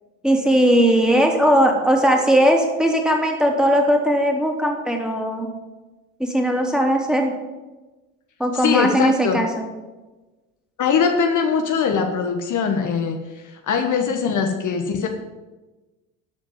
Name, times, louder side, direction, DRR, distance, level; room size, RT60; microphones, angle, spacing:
voice 1, 0.2-5.5 6.2-7.3 8.4-9.7, equal, ahead, 1 dB, 2.9 m, -18 dB
voice 2, 8.5-9.4 10.8-15.1, left 6 dB, 45° left, 4 dB, 1.4 m, -22 dB
12.5 x 5.0 x 8.7 m, 1.2 s
hypercardioid pair, 70°, 40 cm